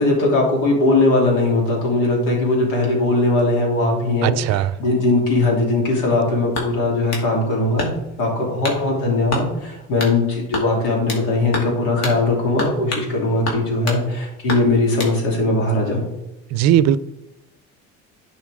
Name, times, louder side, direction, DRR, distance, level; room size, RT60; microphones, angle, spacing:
voice 1, 0.0-7.9 8.2-16.1, left 2 dB, 80° left, 3.2 m, -19 dB
voice 2, 4.2-4.7 16.5-17.0, right 11 dB, 60° right, 0.5 m, -17 dB
sound 1, 6.5-7.3 7.8-8.2 8.6-8.8 9.3-9.5 10.0-10.2 10.5-11.3 11.5-11.7 12.0-12.2 12.6-13.1 13.4-14.0 14.5-15.2, left 2 dB, 55° left, 2.3 m, -28 dB
11.0 x 5.5 x 3.6 m
cardioid pair, 120°, 30 cm